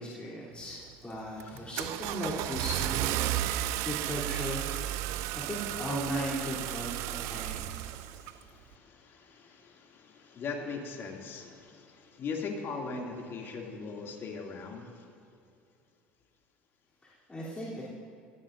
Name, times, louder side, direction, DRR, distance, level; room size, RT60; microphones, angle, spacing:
voice 1, 0.0-4.7 5.0-7.7 17.0-17.9, equal, 20° left, -8 dB, 3.2 m, -37 dB
Car / Engine starting, 0.6-0.9 1.4-8.4, right 14 dB, 65° right, 0.4 m, -33 dB
voice 2, 3.5-3.9 5.0-5.5 7.1-15.1, left 4 dB, 45° left, 1 dB, 2.5 m, -41 dB
20.0 x 14.0 x 2.6 m, 2.5 s
hypercardioid pair, 75°, 5 cm